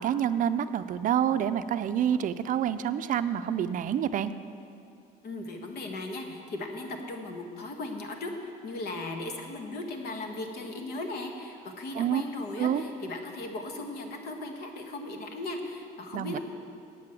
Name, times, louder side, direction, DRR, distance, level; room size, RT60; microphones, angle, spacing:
voice 1, 0.0-4.3 12.0-12.2 12.6-12.8 16.1-16.4, right 9 dB, 50° right, 12 dB, 0.4 m, -27 dB
voice 2, 5.2-16.4, left 2 dB, 70° left, 4 dB, 1.5 m, -37 dB
8.4 x 7.5 x 8.9 m, 2.5 s
cardioid pair, 110°, 17 cm